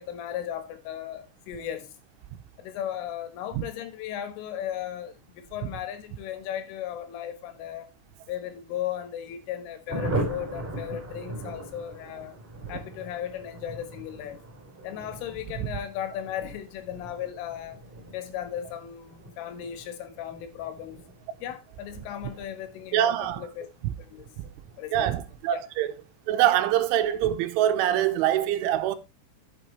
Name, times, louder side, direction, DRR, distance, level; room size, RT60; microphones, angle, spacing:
voice 1, 0.0-2.0 2.6-7.9 8.3-12.4 12.7-14.4 14.8-17.8 18.1-21.0 21.4-23.7 24.0-24.3 24.8-25.2 25.5-25.6, left 10 dB, 85° left, 3.9 m, -36 dB
Thunder, 9.9-26.0 26.3-26.4 26.7-26.8 27.1-27.5, right 1 dB, 10° right, 4.1 m, -39 dB
voice 2, 22.9-23.4 24.9-25.9 26.3-29.0, right 11 dB, 85° right, 3.2 m, -24 dB
12.5 x 7.7 x 3.2 m
omnidirectional pair, 5.6 m